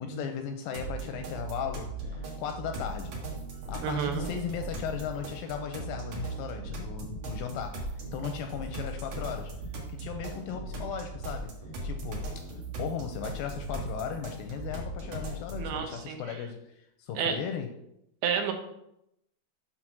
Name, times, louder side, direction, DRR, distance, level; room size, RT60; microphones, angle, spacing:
voice 1, 0.0-3.2 3.7-9.5 9.9-11.5 11.8-17.7, left 7 dB, 80° left, 6 dB, 2.1 m, -37 dB
sound 1, 0.7-15.7, right 2 dB, 60° right, 2.7 m, -38 dB
voice 2, 3.8-4.3 15.6-16.2 17.2-17.3 18.2-18.5, right 7 dB, 85° right, 5 dB, 2.9 m, -30 dB
7.7 x 3.9 x 5.9 m, 0.81 s
omnidirectional pair, 4.4 m